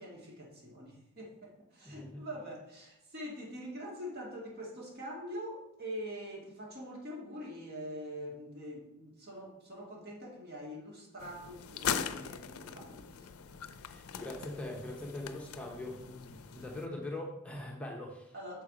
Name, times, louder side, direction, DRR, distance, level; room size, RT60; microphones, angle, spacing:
voice 1, 0.0-13.3 16.6-16.9 18.3-18.6, equal, 50° right, -3 dB, 2.0 m, -44 dB
voice 2, 1.8-2.2 13.8-18.3, left 1 dB, 5° left, -1 dB, 0.8 m, -42 dB
sound 1, 11.2-16.9, left 8 dB, 85° left, 0.5 m, -40 dB
6.9 x 4.8 x 4.8 m, 0.90 s
head